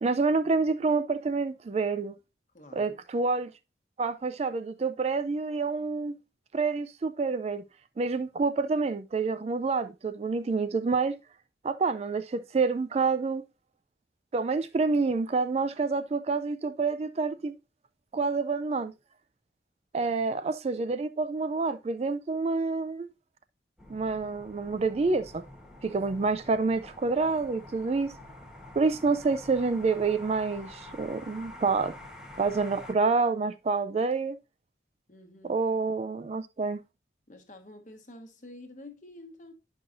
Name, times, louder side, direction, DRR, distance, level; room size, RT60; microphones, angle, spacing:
voice 1, 0.0-2.1 2.7-3.5 4.0-6.2 6.5-7.6 8.0-11.2 11.6-13.4 14.3-17.5 18.1-18.9 19.9-23.1 23.9-25.4 25.8-28.1 28.8-31.9 32.4-34.4 35.4-36.8, right 4 dB, 35° right, 0.3 m, -28 dB
voice 2, 2.5-3.0 19.9-20.2 35.1-35.6 37.3-39.5, left 1 dB, 45° left, 1.1 m, -49 dB
sound 1, 23.8-32.9, left 1 dB, 5° right, 1.1 m, -47 dB
9.7 x 5.5 x 2.6 m
head